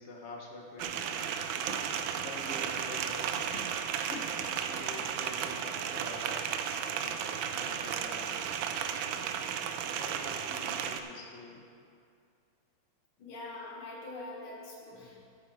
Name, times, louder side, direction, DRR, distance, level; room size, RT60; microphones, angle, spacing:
voice 1, 0.0-3.8 4.1-6.5 7.0-8.4 9.0-9.3 9.8-11.6, left 2 dB, 35° left, -1 dB, 1.5 m, -47 dB
sound 1, 0.8-11.0, right 8 dB, 80° right, 1.4 m, -34 dB
voice 2, 13.2-15.3, left 2 dB, 90° left, -3 dB, 2.5 m, -44 dB
12.5 x 9.0 x 4.4 m, 2.4 s
omnidirectional pair, 2.2 m